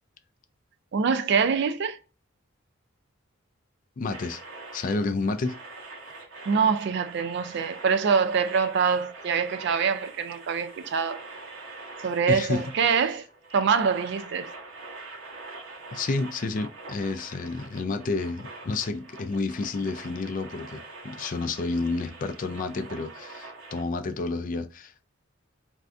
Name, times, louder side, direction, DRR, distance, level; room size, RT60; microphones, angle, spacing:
voice 1, 0.9-2.0 6.5-11.2 12.0-13.2 13.5-14.5, right 6 dB, 55° right, 0.3 m, -24 dB
voice 2, 4.0-4.4 4.7-5.6 12.3-12.6 15.9-25.1, left 3 dB, 40° left, 0.3 m, -30 dB
sound 1, 4.1-23.8, right 3 dB, 75° right, 1.0 m, -44 dB
2.6 x 2.3 x 3.3 m
head